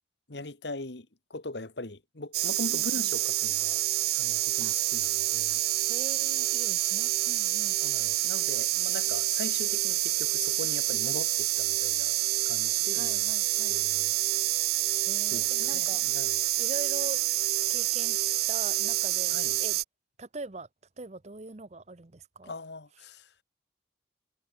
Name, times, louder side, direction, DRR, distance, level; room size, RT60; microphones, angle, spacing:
voice 1, 0.3-3.8 4.1-5.6 7.8-12.2 12.4-13.3 13.7-14.2 15.3-16.4 19.3-19.6 22.4-23.3, left 2 dB, 70° left, 1.7 m, -40 dB
sound 1, 2.3-19.8, right 16 dB, 55° right, 0.4 m, -27 dB
voice 2, 2.7-3.1 4.6-4.8 5.9-7.7 12.9-13.8 15.1-16.0 16.6-17.2 17.7-19.8 20.2-20.7 21.0-22.5, right 2 dB, 35° right, 0.8 m, -42 dB
head